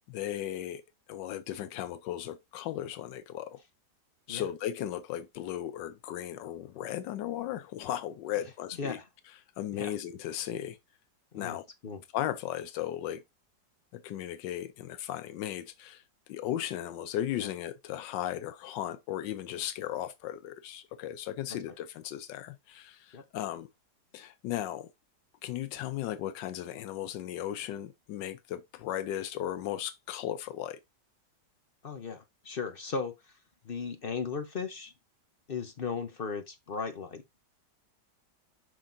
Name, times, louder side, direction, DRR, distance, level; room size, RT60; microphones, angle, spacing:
voice 1, 0.1-0.8 1.1-3.6 4.3-9.0 9.6-10.8 11.3-11.7 12.1-13.2 13.9-23.7 24.1-24.9 25.4-30.8, left 12 dB, 85° left, 1.3 m, -36 dB
voice 2, 31.8-33.4 33.6-34.9 35.5-37.2, left 5 dB, 50° left, 0.6 m, -36 dB
7.4 x 5.9 x 2.6 m
omnidirectional pair, 1.9 m